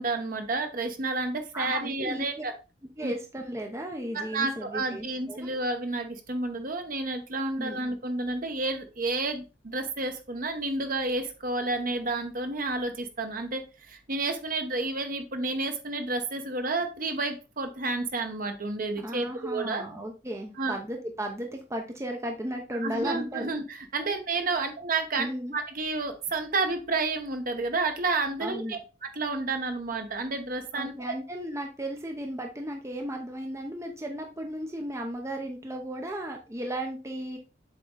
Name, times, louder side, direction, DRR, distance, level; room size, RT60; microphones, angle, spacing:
voice 1, 0.0-2.5 3.0-3.1 4.1-19.8 20.6-20.7 22.7-25.3 25.5-31.1, right 3 dB, 50° right, 6 dB, 1.1 m, -30 dB
voice 2, 1.5-2.4 3.0-5.5 7.6-7.8 19.0-23.5 25.2-25.6 28.4-28.8 30.7-37.4, right 1 dB, 15° right, 3 dB, 0.8 m, -35 dB
7.5 x 3.8 x 3.9 m, 0.31 s
head